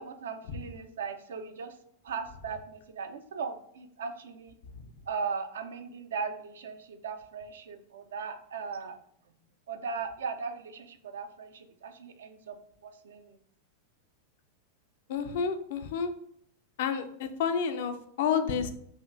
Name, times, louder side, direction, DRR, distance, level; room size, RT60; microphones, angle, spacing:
voice 1, 0.0-1.8 2.0-4.5 5.1-9.0 9.7-12.6 12.8-13.4, right 5 dB, 65° right, 8 dB, 0.4 m, -38 dB
voice 2, 15.1-16.1 16.8-18.7, left 6 dB, 55° left, 9 dB, 0.4 m, -30 dB
4.9 x 2.4 x 2.5 m, 0.67 s
figure-of-eight pair, 90°, 0 cm